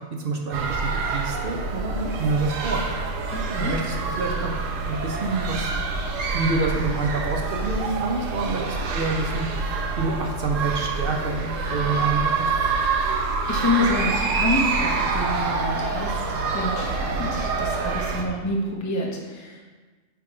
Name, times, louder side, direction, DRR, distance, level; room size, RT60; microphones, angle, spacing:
voice 1, 0.0-2.8 3.5-5.7 6.3-12.5, right 3 dB, 50° right, 1 dB, 1.0 m, -28 dB
sound 1, 0.5-18.2, right 4 dB, 85° right, 1.1 m, -26 dB
voice 2, 3.3-3.7 13.0-19.7, left 2 dB, 15° left, -1 dB, 0.8 m, -28 dB
8.5 x 3.5 x 4.9 m, 1.3 s
omnidirectional pair, 1.3 m